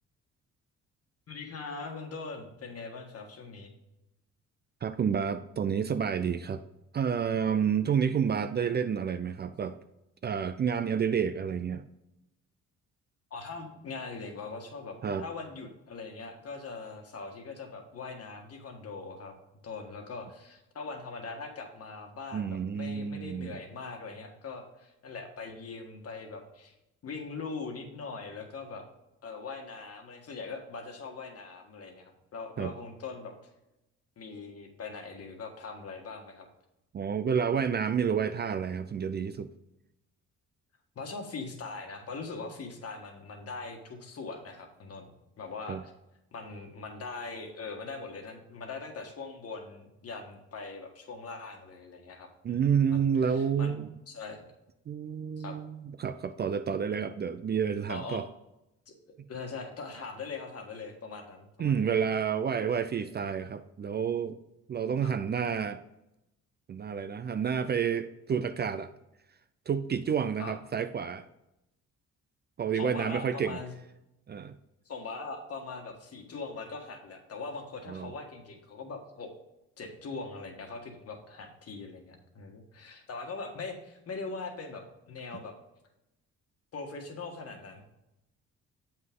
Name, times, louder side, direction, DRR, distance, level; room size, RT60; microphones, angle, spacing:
voice 1, 1.3-3.7 13.3-19.3 19.6-26.7 27.0-28.8 29.2-33.3 34.2-36.5 40.9-45.1 45.4-45.9 46.3-52.6 52.9-53.7 54.1-54.4 55.4-55.6 57.9-58.2 58.9-61.7 62.0-62.1 65.0-65.1 70.4-70.5 72.7-73.7 74.8-79.3 79.8-85.5 86.7-87.8, left 4 dB, 50° left, 4 dB, 1.5 m, -41 dB
voice 2, 4.8-6.6 6.9-9.8 10.2-11.8 15.0-15.3 22.3-23.6 32.6-32.7 36.9-39.5 45.7-45.8 52.4-53.9 54.9-58.3 61.6-64.4 64.7-65.8 66.7-68.9 69.7-71.3 72.6-73.6 74.3-74.5 77.9-78.1, right 7 dB, 35° right, 11 dB, 0.4 m, -29 dB
7.6 x 5.9 x 3.6 m, 0.90 s
cardioid pair, 90°, 30 cm